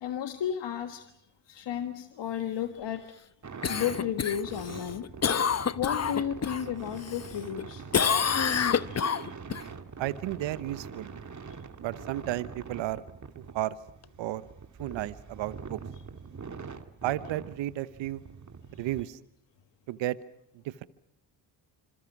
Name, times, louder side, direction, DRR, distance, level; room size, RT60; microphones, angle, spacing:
voice 1, 0.0-1.1 1.5-3.2 3.7-5.1 5.8-7.8 8.9-9.3 11.5-11.6 15.9-16.0, left 9 dB, 70° left, 8 dB, 1.6 m, -33 dB
sound 1, 3.4-19.0, right 5 dB, 40° right, 2.3 m, -44 dB
Cough, 3.6-6.6 7.0-7.6 7.9-9.6 14.0-14.1, left 7 dB, 35° left, 0.9 m, -28 dB
voice 2, 10.0-11.1 11.8-13.0 13.5-13.8 14.2-14.4 14.8-15.8 17.0-18.2 18.8-19.2 19.9-20.2, right 14 dB, 85° right, 15 dB, 1.1 m, -32 dB
27.0 x 26.5 x 6.0 m, 0.77 s
supercardioid pair, 55°, 44 cm